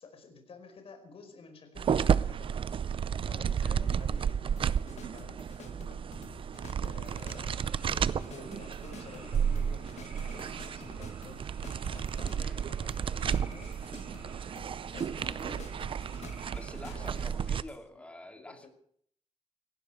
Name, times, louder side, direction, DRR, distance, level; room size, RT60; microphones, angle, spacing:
voice 1, 0.0-2.8 3.2-6.0 6.7-11.5 11.9-13.8 14.9-16.4 16.8-17.6 18.3-18.7, left 4 dB, 55° left, 5 dB, 4.9 m, -52 dB
sound 1, 1.8-17.6, right 7 dB, 50° right, 0.6 m, -32 dB
sound 2, 4.6-17.8, left 8 dB, 75° left, 1.5 m, -52 dB
sound 3, 7.0-16.7, equal, 10° right, 7.5 m, -56 dB
voice 2, 16.5-18.7, left 1 dB, 10° left, 4 dB, 2.4 m, -47 dB
18.5 x 16.0 x 4.9 m, 0.62 s
wide cardioid pair, 130°, 12 cm